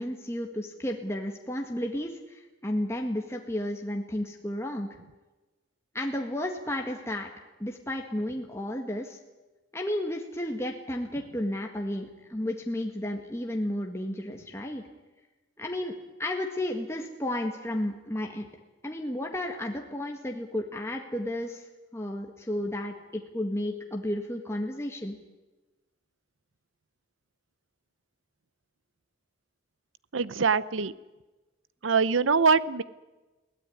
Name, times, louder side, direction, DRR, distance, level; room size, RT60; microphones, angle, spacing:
voice 1, 0.0-4.9 5.9-7.3 7.6-9.2 9.7-14.8 15.6-18.5 18.8-25.2, left 1 dB, 15° left, 2 dB, 1.7 m, -32 dB
voice 2, 30.1-30.9 31.8-32.8, right 5 dB, 85° right, 18 dB, 0.9 m, -23 dB
22.0 x 17.0 x 9.6 m, 1.1 s
head